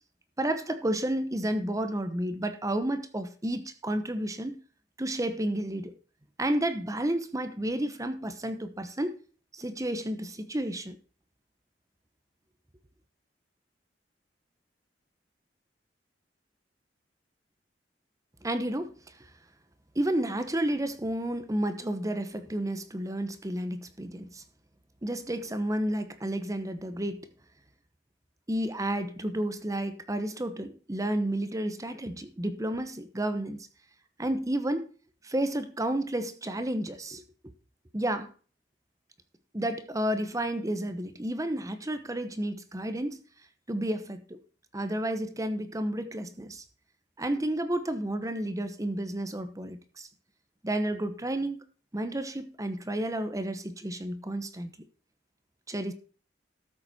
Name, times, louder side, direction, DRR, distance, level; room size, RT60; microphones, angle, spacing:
voice 1, 0.4-4.6 5.0-5.9 6.4-9.2 9.5-11.0 18.4-18.9 19.9-24.4 25.0-27.3 28.5-33.7 34.2-34.9 35.2-37.2 37.9-38.3 39.5-43.2 43.7-44.4 44.7-46.6 47.2-50.1 50.6-51.6 51.9-54.7 55.7-55.9, right 1 dB, 20° right, 1.0 m, -31 dB
13.5 x 7.4 x 4.3 m
head